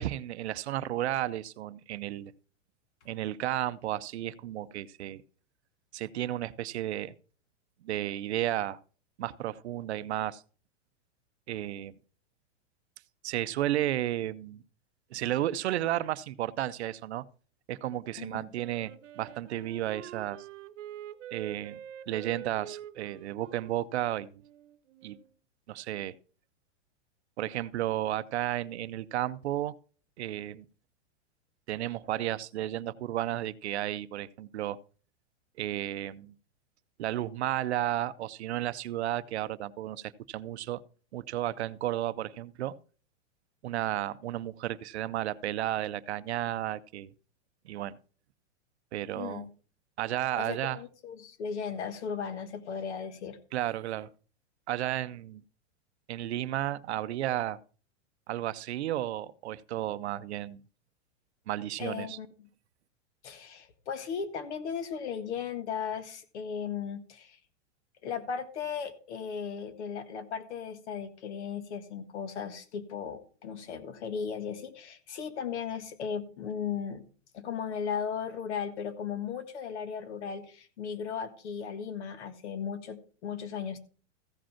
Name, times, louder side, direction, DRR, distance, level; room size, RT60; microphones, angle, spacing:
voice 1, 0.0-2.3 3.1-5.2 5.9-7.1 7.8-8.8 9.2-10.4 11.5-11.9 13.2-14.6 15.1-17.2 17.7-20.5 21.3-21.8 22.1-24.3 25.0-25.2 25.7-26.1 27.4-29.8 30.2-30.7 31.7-34.8 35.6-36.3 37.0-40.8 41.1-42.7 43.6-47.1 47.6-48.0 48.9-49.4 50.0-50.8 53.5-54.1 54.7-55.4 56.1-57.6 58.3-60.6 61.5-62.2, right 13 dB, 60° right, 0.6 m, -33 dB
voice 2, 18.2-18.5 49.1-49.5 50.4-53.4 61.8-62.3 63.2-67.4 68.0-77.0 77.3-83.8, left 7 dB, 65° left, 1.6 m, -36 dB
Wind instrument woodwind instrument, 18.5-25.3, right 11 dB, 80° right, 1.0 m, -46 dB
15.0 x 5.1 x 5.7 m
supercardioid pair, 175°, 36 cm